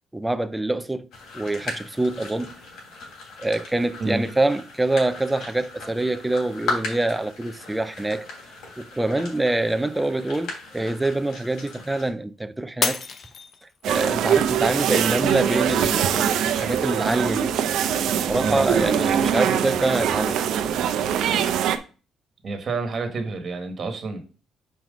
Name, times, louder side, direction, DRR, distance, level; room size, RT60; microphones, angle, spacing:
voice 1, 0.1-1.1 1.3-2.5 3.4-8.3 8.8-13.0 13.9-17.5 18.3-20.4, right 2 dB, 5° right, 0.4 m, -25 dB
sound 1, 1.1-12.1, left 3 dB, 70° left, 3.2 m, -37 dB
Shatter, 12.8-14.1 14.6-15.1 15.6-15.7, left 5 dB, 35° left, 0.6 m, -28 dB
sound 2, 13.8-21.8, right 9 dB, 70° right, 0.7 m, -23 dB
voice 2, 18.4-18.7 22.4-24.2, right 3 dB, 35° right, 1.5 m, -29 dB
5.8 x 4.7 x 5.2 m
cardioid pair, 165°, 0 cm